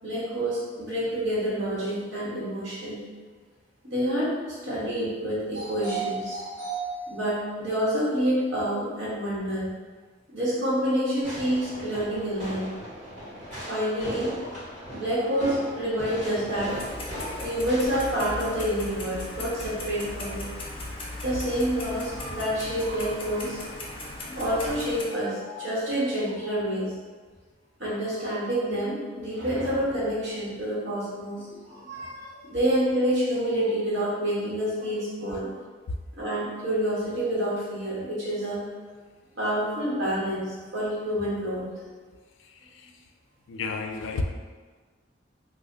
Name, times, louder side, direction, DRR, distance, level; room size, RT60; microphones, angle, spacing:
voice 1, 0.0-3.0 3.8-4.3 4.6-9.7 10.3-12.7 13.7-14.5 14.9-20.5 21.2-23.6 24.3-26.9 27.8-35.5 36.2-38.6 39.3-41.7, equal, 80° right, -8 dB, 1.3 m, -28 dB
Fireworks, 11.2-18.6, equal, 40° right, 1.1 m, -38 dB
Clock, 16.7-25.0, left 1 dB, 30° left, 0.6 m, -37 dB
voice 2, 42.4-43.0 43.5-44.2, left 4 dB, 90° left, 4 dB, 0.4 m, -33 dB
3.0 x 2.0 x 3.7 m, 1.5 s
head